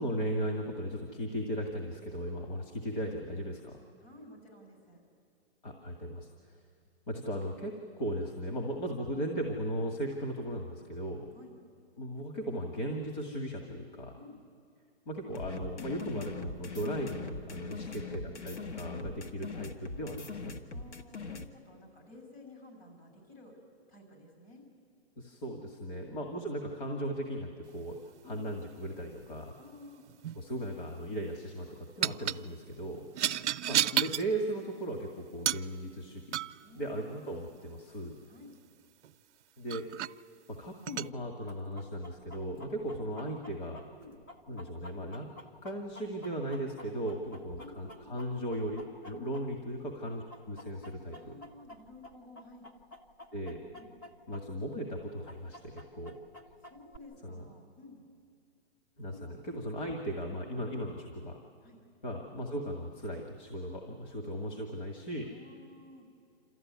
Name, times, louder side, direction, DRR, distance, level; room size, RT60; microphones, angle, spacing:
voice 1, 0.0-3.8 5.6-6.3 7.1-11.3 12.0-14.2 15.1-20.6 25.2-28.0 28.3-29.5 30.4-33.1 33.7-36.4 36.8-38.1 39.6-39.9 40.5-43.8 44.5-45.3 45.6-51.4 53.3-53.6 54.3-56.2 57.2-57.5 59.0-61.4 62.0-65.3, equal, 45° left, 2 dB, 2.1 m, -37 dB
voice 2, 4.0-5.0 11.3-11.5 14.2-14.4 17.7-18.4 18.9-19.1 20.7-23.6 23.9-24.6 25.9-26.1 28.2-28.4 29.6-30.0 33.1-33.4 36.6-37.6 38.3-38.5 44.0-44.2 47.6-48.1 49.4-49.5 51.1-52.7 53.7-53.9 56.6-58.0 59.1-59.6 61.6-61.8 65.2-66.1, left 2 dB, 60° left, 2 dB, 7.1 m, -53 dB
sound 1, 15.3-21.5, left 3 dB, 80° left, 1.8 m, -41 dB
sound 2, 30.1-30.4 32.0-32.4 33.1-34.3 35.5-35.7 36.3-36.6 39.0-39.1 39.7-40.1 40.9-41.1, right 11 dB, 80° right, 0.5 m, -31 dB
Chicken rooster, 41.5-49.8 50.1-54.4 54.7-54.8 55.3-57.0, left 1 dB, 15° left, 0.7 m, -50 dB
27.5 x 14.0 x 9.5 m, 2.4 s
hypercardioid pair, 165°, 34 cm